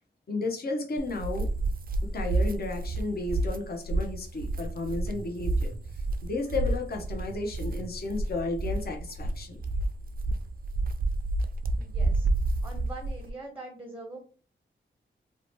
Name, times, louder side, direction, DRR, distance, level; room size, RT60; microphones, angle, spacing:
voice 1, 0.3-1.5 2.0-9.6, left 2 dB, 50° left, 3 dB, 0.6 m, -33 dB
sound 1, 1.0-13.3, right 2 dB, 45° right, 0.4 m, -30 dB
voice 2, 11.8-12.3 12.6-14.2, right 2 dB, 10° right, 2 dB, 0.6 m, -43 dB
2.7 x 2.1 x 2.9 m, 0.40 s
cardioid pair, 70°, 20 cm